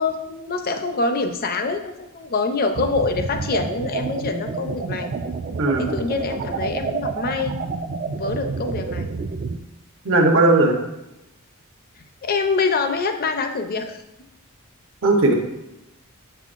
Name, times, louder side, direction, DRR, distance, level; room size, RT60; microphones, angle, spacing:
voice 1, 0.0-5.1 5.8-7.5 8.1-9.1 12.2-14.0, left 4 dB, 45° left, 6 dB, 0.5 m, -25 dB
sound 1, 2.7-9.6, right 4 dB, 40° right, 0.3 m, -29 dB
voice 2, 5.6-6.0 10.0-10.7 15.0-15.3, right 2 dB, 60° right, 3 dB, 0.9 m, -17 dB
6.8 x 5.6 x 2.5 m, 0.93 s
head